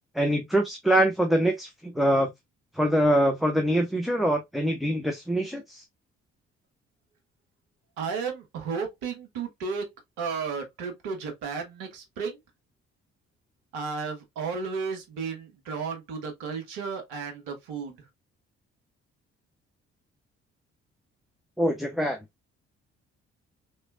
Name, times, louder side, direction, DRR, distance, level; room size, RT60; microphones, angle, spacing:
voice 1, 0.1-2.3 2.7-5.8 21.6-22.2, right 1 dB, ahead, 0.7 m, -24 dB
voice 2, 8.0-9.9 10.2-12.4 13.7-18.0, right 5 dB, 70° right, 1.2 m, -33 dB
3.6 x 3.3 x 2.5 m
figure-of-eight pair, 40°, 35 cm